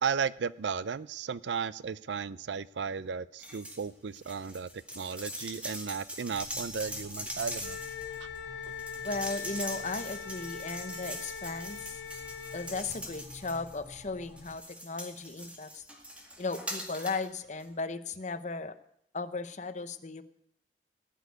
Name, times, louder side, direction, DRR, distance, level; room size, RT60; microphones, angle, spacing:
voice 1, 0.0-4.7 4.9-7.8, right 6 dB, 85° right, 18 dB, 0.5 m, -34 dB
sound 1, 3.4-3.8 4.1-13.9 14.4-17.3 17.6-17.7, equal, 5° right, 2.1 m, -42 dB
sound 2, 6.3-14.6, left 1 dB, 15° left, 5.2 m, -52 dB
Wind instrument woodwind instrument, 7.6-12.8, left 6 dB, 85° left, 1.8 m, -41 dB
voice 2, 9.0-12.0 12.5-15.8 16.4-18.7 19.1-20.2, left 3 dB, 45° left, 11 dB, 0.9 m, -36 dB
18.0 x 6.4 x 9.5 m, 0.73 s
head